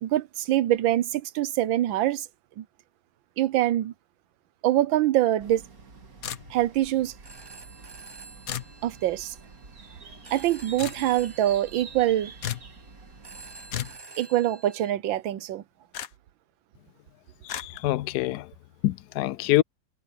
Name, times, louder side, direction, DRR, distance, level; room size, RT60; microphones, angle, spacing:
voice 1, 0.0-2.3 2.6-2.7 3.4-3.9 4.6-5.6 6.5-7.1 8.8-9.3 10.3-12.3 14.2-15.6, right 13 dB, 90° right, 1.6 m, -24 dB
sound 1, 5.4-14.0, right 4 dB, 50° right, 2.5 m, -48 dB
sound 2, 6.2-6.8 8.5-8.7 10.8-11.0 12.4-12.7 13.7-14.0 15.9-16.1 17.5-17.7, left 10 dB, 55° left, 1.2 m, -33 dB
Telephone, 7.1-14.9, right 3 dB, 20° right, 0.6 m, -49 dB
voice 2, 17.5-18.5 18.8-19.6, left 16 dB, 75° left, 1.0 m, -25 dB
omnidirectional pair, 2.0 m